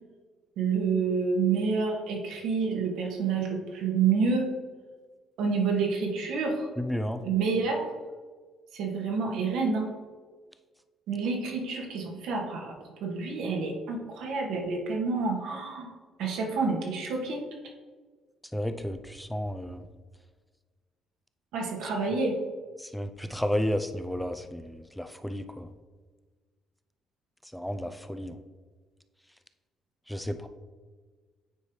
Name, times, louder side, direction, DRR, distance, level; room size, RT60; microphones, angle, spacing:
voice 1, 0.6-4.5 5.4-6.7 7.2-7.8 8.7-9.9 11.1-15.9 16.2-17.4 21.5-22.4, right 4 dB, 80° right, 0 dB, 1.5 m, -28 dB
voice 2, 6.8-7.2 18.5-19.8 22.8-25.7 27.5-28.4 30.1-30.5, equal, ahead, 8 dB, 0.4 m, -32 dB
9.4 x 4.7 x 3.2 m, 1.4 s
cardioid pair, 120°, 0 cm